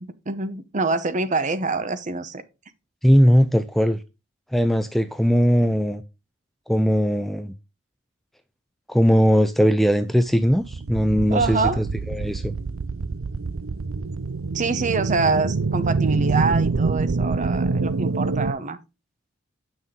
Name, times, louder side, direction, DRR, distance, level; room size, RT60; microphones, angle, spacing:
voice 1, 0.0-2.4 11.3-11.8 14.5-18.8, right 3 dB, 40° right, 0.8 m, -25 dB
voice 2, 3.0-4.0 4.5-6.0 6.7-7.5 8.9-12.5, equal, ahead, 0.4 m, -19 dB
sound 1, 10.4-18.5, right 4 dB, 80° right, 0.6 m, -25 dB
8.9 x 6.2 x 3.7 m
head